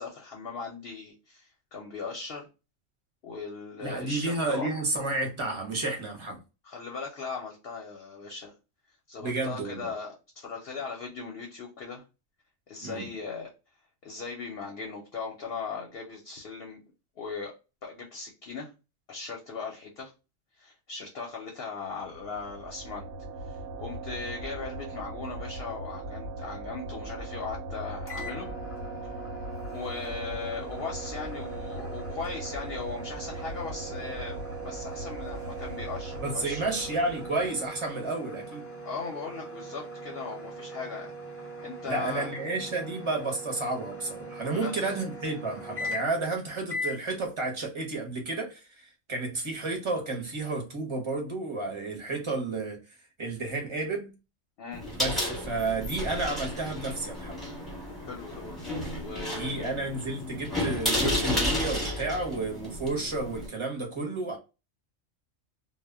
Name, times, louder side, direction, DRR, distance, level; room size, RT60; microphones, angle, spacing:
voice 1, 0.0-2.5 3.2-4.7 6.6-8.5 9.1-12.0 12.7-13.5 14.0-16.8 17.2-17.5 17.8-18.7 19.1-20.1 20.6-23.1 23.4-28.5 29.7-34.4 34.6-36.6 38.8-41.1 41.6-42.3 44.5-44.7 54.6-54.8 58.1-58.6 59.0-59.7, left 4 dB, 60° left, 0.7 m, -38 dB
voice 2, 3.8-6.4 9.2-9.9 12.8-13.1 36.2-38.6 41.9-52.8 53.2-54.1 55.0-57.4 59.3-64.4, right 3 dB, 30° right, 0.6 m, -31 dB
sound 1, 21.9-37.8, right 2 dB, 70° right, 0.8 m, -39 dB
sound 2, 28.1-46.3 46.7-47.0, right 1 dB, 20° left, 0.4 m, -41 dB
sound 3, 54.7-63.5, left 1 dB, ahead, 0.8 m, -32 dB
2.1 x 2.1 x 3.3 m
omnidirectional pair, 1.4 m